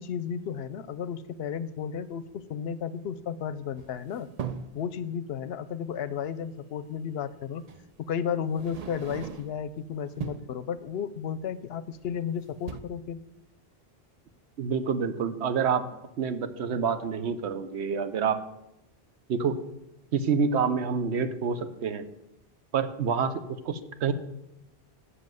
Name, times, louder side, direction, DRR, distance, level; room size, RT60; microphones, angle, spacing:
voice 1, 0.0-4.3 4.7-7.6 8.1-13.2, left 7 dB, 70° left, 15 dB, 0.8 m, -33 dB
sound 1, 3.8-4.8 6.5-6.6 7.7-7.9 8.5-9.7 10.1-10.6 11.9-12.3 12.5-12.8, right 7 dB, 50° right, 0.5 m, -39 dB
voice 2, 14.6-15.9 16.2-18.4 19.3-19.6 20.1-22.0 22.7-23.3 23.6-24.1, right 6 dB, 85° right, 11 dB, 1.0 m, -27 dB
7.5 x 6.4 x 7.7 m, 0.88 s
omnidirectional pair, 1.1 m